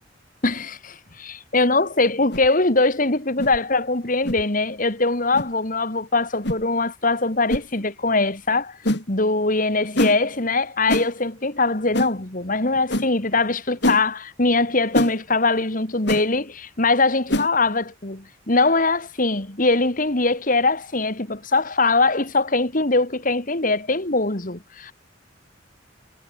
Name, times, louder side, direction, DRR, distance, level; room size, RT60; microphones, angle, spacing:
voice 1, 0.4-8.8 9.1-24.9, left 3 dB, 45° left, 2.3 m, -22 dB
sound 1, 2.3-2.5 3.4-3.6 4.2-4.4 5.3-5.5 6.4-6.6 7.5-7.7 8.8-9.0 10.0-10.2 10.9-11.1 11.9-12.1 12.9-13.1 13.8-14.0 14.9-15.1 16.1-16.2 17.3-17.5, left 1 dB, 60° left, 5.9 m, -24 dB
head